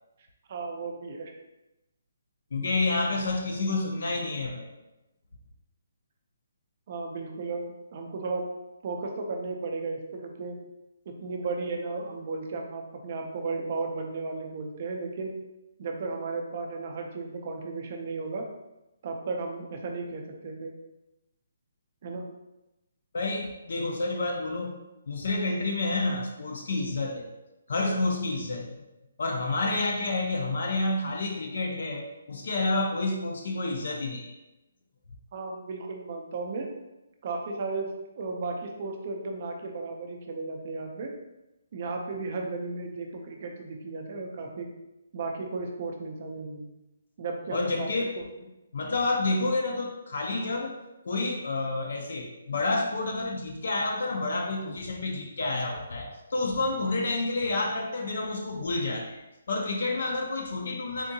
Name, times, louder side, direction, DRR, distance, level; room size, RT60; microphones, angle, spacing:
voice 1, 0.5-1.3 6.9-8.5 8.8-10.6 11.1-15.3 15.8-18.5 19.0-20.7 22.0-22.2 35.3-36.7 37.2-41.1 41.7-44.7 45.1-46.7 47.2-47.9 48.2-48.3, right 3 dB, 30° right, 2 dB, 0.4 m, -34 dB
voice 2, 2.5-4.7 23.1-24.8 25.1-27.3 27.7-28.8 29.2-34.4 47.5-48.2 48.7-50.8 51.0-61.1, left 2 dB, 55° left, 1 dB, 0.4 m, -29 dB
3.6 x 2.6 x 2.6 m, 0.97 s
hypercardioid pair, 180°, 0 cm